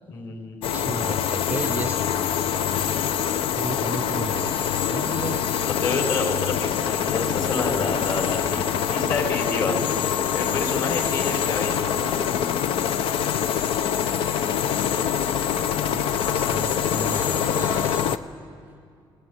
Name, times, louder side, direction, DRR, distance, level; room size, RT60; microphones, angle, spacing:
voice 1, 0.1-1.0 5.6-8.6 8.9-9.8 10.3-12.4, left 3 dB, 45° left, 2 dB, 4.6 m, -29 dB
sound 1, 0.6-18.2, left 9 dB, 75° left, 0.8 m, -25 dB
voice 2, 0.7-2.1 3.6-5.5 15.9-18.2, right 3 dB, 15° right, 9 dB, 0.6 m, -34 dB
sound 2, 1.3-18.2, left 6 dB, 90° left, 4.3 m, -43 dB
26.0 x 19.5 x 9.6 m, 2.3 s
cardioid pair, 165°, 9 cm